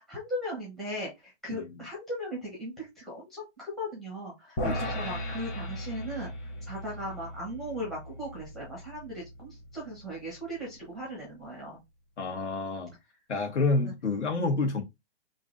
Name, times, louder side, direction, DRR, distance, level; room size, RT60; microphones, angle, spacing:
voice 1, 0.0-11.8, equal, ahead, 0.6 m, -38 dB
voice 2, 4.6-5.0 12.2-12.9 13.3-14.8, left 3 dB, 80° left, 1.6 m, -29 dB
sound 1, 4.6-10.9, equal, 25° left, 0.9 m, -38 dB
3.2 x 2.6 x 3.8 m
hypercardioid pair, 165°, 34 cm